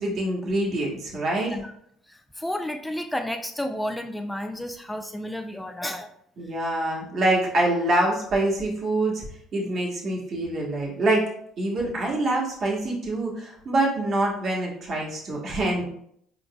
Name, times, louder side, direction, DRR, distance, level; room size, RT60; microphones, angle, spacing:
voice 1, 0.0-1.5 6.4-9.3 9.5-11.3 11.6-15.8, right 1 dB, 50° right, -2 dB, 1.4 m, -25 dB
voice 2, 1.4-1.7 2.1-6.1, left 1 dB, 5° left, 6 dB, 0.4 m, -31 dB
4.7 x 3.9 x 2.3 m, 0.70 s
supercardioid pair, 80°, 0 cm